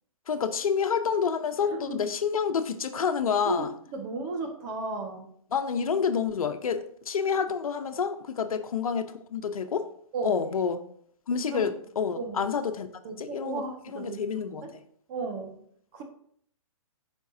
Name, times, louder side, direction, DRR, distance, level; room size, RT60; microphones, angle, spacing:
voice 1, 0.3-3.7 5.5-9.9 10.2-10.8 11.3-12.9 13.2-14.6, left 6 dB, 80° left, 1.0 m, -28 dB
voice 2, 1.7-2.0 3.5-5.3 10.1-10.4 11.5-11.7 12.2-12.5 13.0-14.7 15.1-15.6 15.9-16.0, right 3 dB, 30° right, 1.7 m, -34 dB
15.5 x 5.3 x 2.8 m
hypercardioid pair, 160°, 18 cm